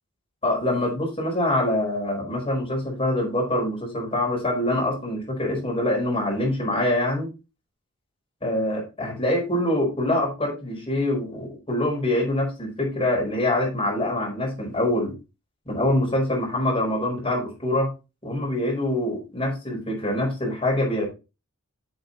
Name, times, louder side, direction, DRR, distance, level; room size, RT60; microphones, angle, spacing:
voice 1, 0.4-7.3 8.4-15.1 15.6-17.9 18.2-21.1, left 1 dB, 25° left, -3 dB, 5.1 m, -25 dB
7.9 x 7.9 x 4.1 m, 0.28 s
head